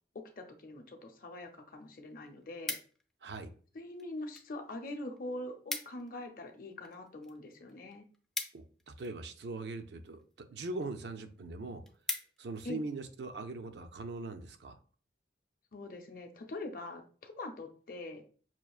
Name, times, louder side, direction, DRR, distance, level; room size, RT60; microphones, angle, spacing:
voice 1, 0.1-2.8 3.7-8.1 12.6-12.8 15.7-18.2, left 2 dB, 50° left, 0.6 m, -43 dB
sound 1, 2.1-3.3 4.0-4.5 4.8-4.9 5.2-5.3 5.5-6.1 6.5-9.3 10.0-10.4 10.9-11.0 11.3-11.4 11.7-12.7 13.2-13.4, left 2 dB, 5° left, 0.3 m, -41 dB
voice 2, 8.5-11.8 12.4-14.8, right 3 dB, 70° right, 0.4 m, -41 dB
5.7 x 2.4 x 2.4 m
head